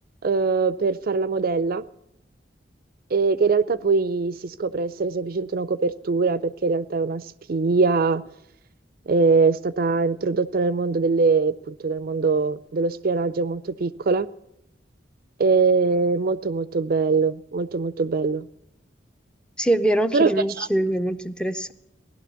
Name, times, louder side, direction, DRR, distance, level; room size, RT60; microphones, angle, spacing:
voice 1, 0.2-1.8 3.1-7.2 7.5-8.2 9.1-14.3 15.4-18.5 20.1-20.3 20.6-20.7, right 4 dB, 55° right, 16 dB, 0.5 m, -22 dB
voice 2, 19.6-21.7, right 1 dB, 5° left, 10 dB, 0.5 m, -23 dB
16.5 x 11.5 x 6.9 m, 0.84 s
head